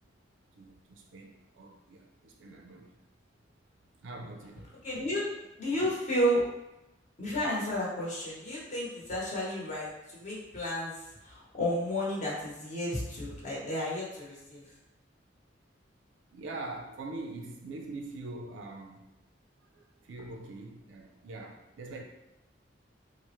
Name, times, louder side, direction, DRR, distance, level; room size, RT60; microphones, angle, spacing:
voice 1, 0.5-2.9 4.0-4.7 16.3-19.1 19.7-22.0, right 2 dB, 80° right, 2 dB, 0.4 m, -43 dB
voice 2, 4.8-5.3 5.6-6.4 7.2-10.9 11.2-14.6, equal, 40° left, -6 dB, 0.9 m, -32 dB
3.2 x 2.0 x 2.9 m, 0.95 s
head